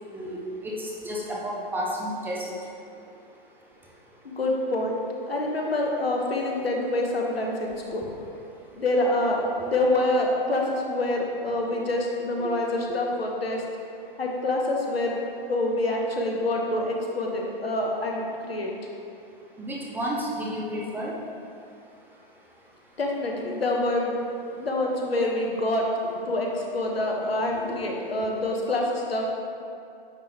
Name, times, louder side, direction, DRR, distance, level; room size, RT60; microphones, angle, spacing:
voice 1, 0.6-2.4 12.4-12.5 19.6-21.1, equal, 5° right, -4 dB, 0.4 m, -31 dB
voice 2, 4.2-8.0 8.7-13.6 14.2-15.2 15.5-18.7 23.0-24.1 24.6-25.9 26.3-29.3, left 1 dB, 90° left, 0 dB, 1.1 m, -26 dB
9.3 x 3.5 x 3.4 m, 2.6 s
figure-of-eight pair, 120°, 29 cm